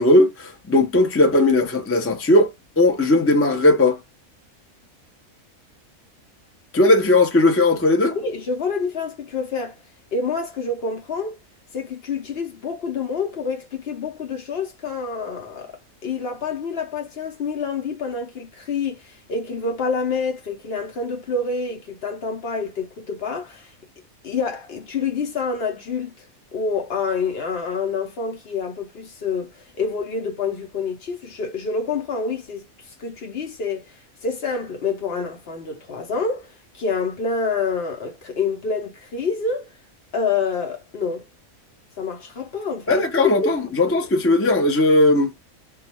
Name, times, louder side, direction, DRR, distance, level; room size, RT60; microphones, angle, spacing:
voice 1, 0.0-2.5 2.8-4.0 6.7-8.2 42.9-45.3, left 2 dB, 20° left, 0.4 m, -17 dB
voice 2, 8.1-9.8 10.1-11.4 11.7-15.7 16.0-23.7 24.2-26.3 26.5-32.6 33.0-33.9 34.2-36.5 36.7-39.7 40.1-41.2 42.0-43.0 43.4-43.6, left 4 dB, 55° left, 0.8 m, -27 dB
2.4 x 2.3 x 2.9 m
omnidirectional pair, 1.4 m